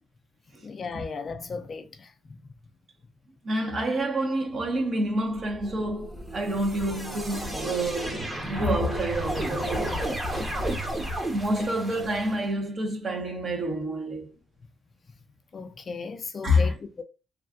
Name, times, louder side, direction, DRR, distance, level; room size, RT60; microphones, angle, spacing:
voice 1, 0.6-2.1 15.5-17.0, left 4 dB, 45° left, 0.5 m, -36 dB
voice 2, 3.4-10.0 11.3-14.3 16.4-16.8, equal, 45° right, 1.3 m, -28 dB
sound 1, 5.3-12.4, equal, 20° right, 1.1 m, -32 dB
3.2 x 2.5 x 2.5 m
cardioid pair, 90°, 0 cm